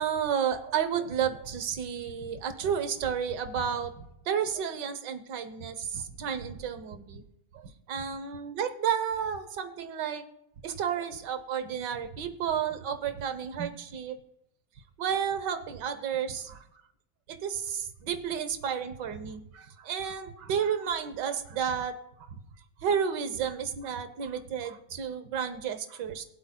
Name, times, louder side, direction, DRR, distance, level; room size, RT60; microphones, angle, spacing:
voice 1, 0.0-7.2 7.5-10.2 10.6-14.2 15.0-16.6 17.3-21.9 22.3-22.4 22.8-26.2, right 8 dB, 75° right, 10 dB, 1.6 m, -32 dB
21.5 x 8.0 x 2.2 m, 0.81 s
omnidirectional pair, 1.9 m